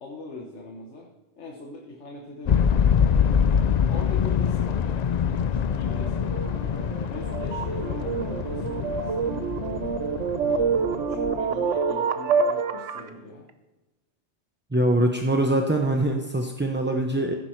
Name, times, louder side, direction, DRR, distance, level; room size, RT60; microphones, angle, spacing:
voice 1, 0.0-3.0 3.9-5.0 5.5-6.6 7.1-9.5 10.4-13.5, left 2 dB, 75° left, 1 dB, 1.5 m, -41 dB
sound 1, 2.5-11.5, left 7 dB, 55° left, 0.5 m, -25 dB
sound 2, 5.8-13.1, right 5 dB, 85° right, 1.2 m, -27 dB
voice 2, 14.7-17.3, right 1 dB, 10° right, 3 dB, 0.5 m, -23 dB
16.0 x 10.0 x 4.6 m, 1.1 s
omnidirectional pair, 1.2 m